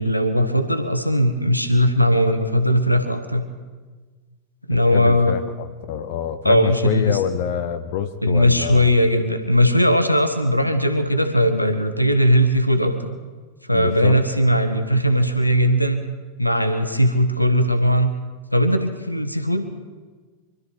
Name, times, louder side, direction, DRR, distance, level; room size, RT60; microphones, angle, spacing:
voice 1, 0.0-3.4 4.7-5.4 6.4-7.2 8.2-13.1 13.6-16.0 16.4-18.1 18.5-19.7, equal, 90° left, 8 dB, 1.3 m, -19 dB
voice 2, 4.7-8.9 13.7-14.2, left 9 dB, 50° left, 9 dB, 0.8 m, -26 dB
24.0 x 13.0 x 4.6 m, 1.4 s
figure-of-eight pair, 90°, 0 cm